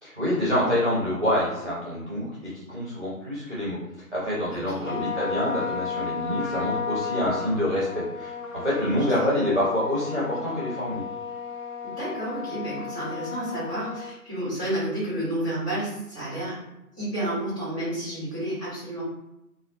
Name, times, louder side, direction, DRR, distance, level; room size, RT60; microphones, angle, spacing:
voice 1, 0.0-3.8 4.1-8.3 8.6-11.0, left 1 dB, 35° right, -7 dB, 0.5 m, -26 dB
voice 2, 4.5-5.0 8.7-9.0 11.8-16.6 17.0-19.0, right 1 dB, 5° left, -16 dB, 1.4 m, -31 dB
Trumpet, 4.8-14.1, left 5 dB, 55° left, 1.1 m, -34 dB
2.6 x 2.0 x 2.6 m, 0.86 s
figure-of-eight pair, 165°, 46 cm